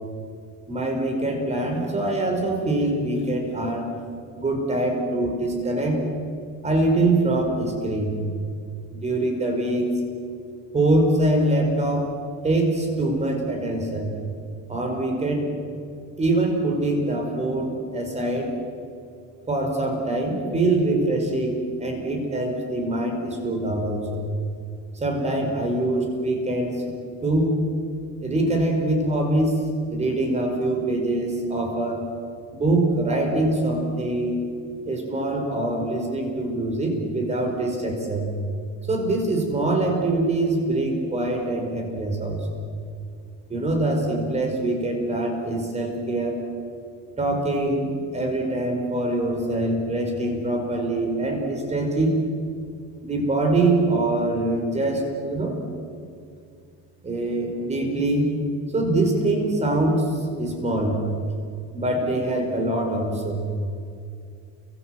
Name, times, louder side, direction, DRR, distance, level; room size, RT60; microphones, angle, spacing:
voice 1, 0.7-3.9 4.3-6.0 6.6-8.2 8.9-9.9 10.7-12.1 12.4-14.1 14.7-15.5 16.2-18.5 19.5-24.2 24.9-26.9 27.2-27.6 28.2-29.5 29.9-32.0 32.5-34.4 34.8-38.3 38.9-42.5 43.5-46.4 47.2-52.1 53.0-55.5 57.0-58.3 58.7-61.0 61.7-63.4, right 2 dB, 20° right, 3 dB, 5.1 m, -24 dB
30.0 x 25.5 x 7.8 m, 2.4 s
cardioid pair, 165°, 34 cm